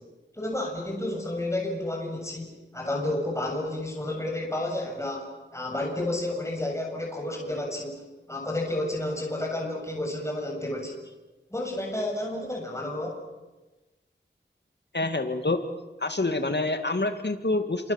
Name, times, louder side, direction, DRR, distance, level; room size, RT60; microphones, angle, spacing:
voice 1, 0.3-8.0 8.3-11.0 11.5-13.1, left 1 dB, 15° left, -1 dB, 7.4 m, -31 dB
voice 2, 14.9-15.6 16.0-17.9, left 2 dB, 60° left, 7 dB, 2.3 m, -27 dB
29.5 x 27.0 x 7.4 m, 1.1 s
wide cardioid pair, 55°, 20 cm